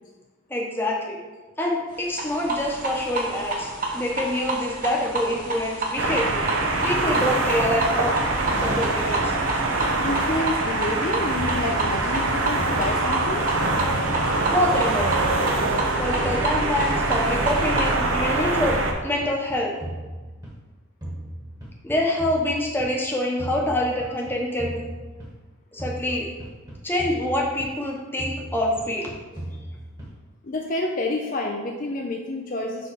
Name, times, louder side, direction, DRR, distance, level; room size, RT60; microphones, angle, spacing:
voice 1, 0.5-1.2 1.6-6.4 6.8-8.2 8.6-9.3 14.5-15.1 16.0-18.8 19.0-19.7 21.8-24.8 25.7-26.3 26.8-29.1, left 1 dB, 10° left, -2 dB, 0.9 m, -26 dB
sound 1, 2.1-18.0, right 2 dB, 40° right, 0.9 m, -30 dB
sound 2, 6.0-18.9, right 2 dB, 70° right, 0.8 m, -24 dB
voice 2, 10.0-13.5 30.4-32.9, left 2 dB, 40° left, 1 dB, 0.5 m, -28 dB
sound 3, 11.4-13.5 13.8-15.9 16.2-18.3 18.6-20.7 21.0-23.0 23.4-25.5 25.8-27.9 28.2-30.3, right 1 dB, 20° right, 1.3 m, -37 dB
6.6 x 3.8 x 4.8 m, 1.3 s
head